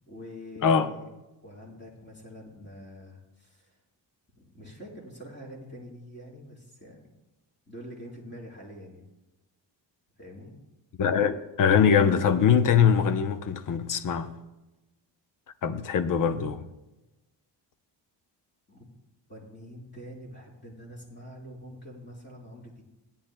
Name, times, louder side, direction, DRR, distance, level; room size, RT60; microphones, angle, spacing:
voice 1, 0.1-1.0 1.4-3.8 4.3-7.1 7.7-9.1 10.2-10.5 18.7-18.9 19.3-22.8, equal, 25° left, 3.9 m, -45 dB
voice 2, 11.0-14.3 15.6-16.7, left 7 dB, 45° left, 0.8 m, -22 dB
17.5 x 10.5 x 2.2 m
cardioid pair, 120°, 43 cm